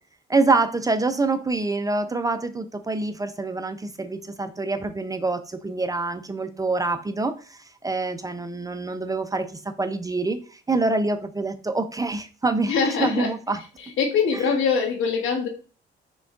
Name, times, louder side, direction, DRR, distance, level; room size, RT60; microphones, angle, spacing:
voice 1, 0.3-9.5 9.8-13.6 14.3-14.6, right 3 dB, 20° right, 9 dB, 0.5 m, -26 dB
voice 2, 12.7-13.3 14.0-15.5, left 5 dB, 80° left, 1 dB, 1.4 m, -23 dB
5.9 x 2.3 x 3.7 m, 0.38 s
cardioid pair, 90°, 20 cm